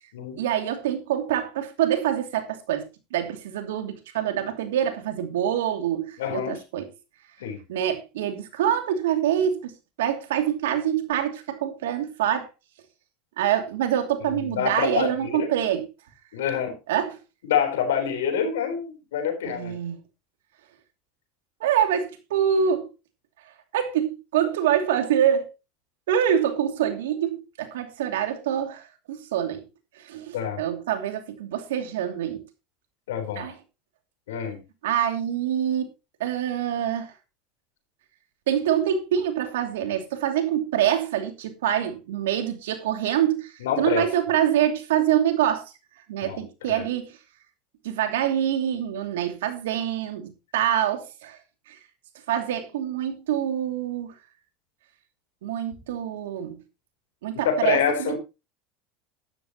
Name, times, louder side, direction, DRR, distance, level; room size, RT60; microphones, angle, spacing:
voice 1, 0.4-6.9 7.7-9.7 10.0-12.5 13.4-15.8 16.9-17.2 19.4-20.0 21.6-22.9 23.7-25.5 26.1-29.7 30.0-32.4 33.4-33.5 34.8-35.9 36.2-37.1 38.5-45.6 46.1-47.1 47.8-51.4 51.7-51.8 52.3-54.1 55.4-56.6 57.2-58.2, right 10 dB, 85° right, 2.7 m, -25 dB
voice 2, 6.2-6.6 7.4-7.6 14.3-15.5 16.3-16.8 17.4-19.7 30.3-30.6 33.1-33.5 34.3-34.6 43.6-44.0 46.2-46.8 57.4-58.2, left 8 dB, 90° left, 4.1 m, -26 dB
12.0 x 12.0 x 3.0 m
supercardioid pair, 95°, 0 cm